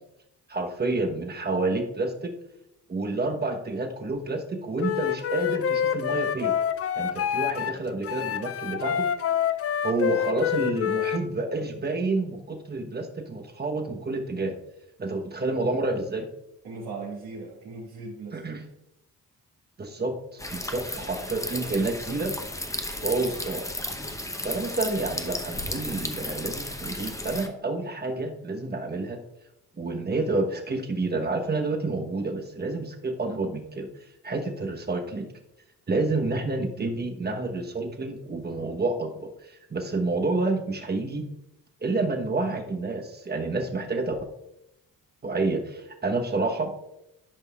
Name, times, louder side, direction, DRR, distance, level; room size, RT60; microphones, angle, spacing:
voice 1, 0.5-2.3 2.9-6.6 7.0-9.0 9.8-14.5 15.0-16.3 18.3-18.6 19.8-22.3 23.0-23.7 24.4-29.2 29.8-33.9 34.2-35.3 35.9-41.3 41.8-44.1 45.2-46.8, right 3 dB, 25° right, 4 dB, 1.1 m, -29 dB
Wind instrument woodwind instrument, 4.8-7.7 8.0-11.2, left 9 dB, 40° left, 0.5 m, -27 dB
voice 2, 16.6-18.4 21.0-21.4 36.8-37.0, right 4 dB, 70° right, -7 dB, 2.0 m, -39 dB
sound 1, 20.4-27.5, left 1 dB, 10° left, 0.8 m, -34 dB
12.0 x 5.2 x 2.4 m, 0.87 s
cardioid pair, 70°, 37 cm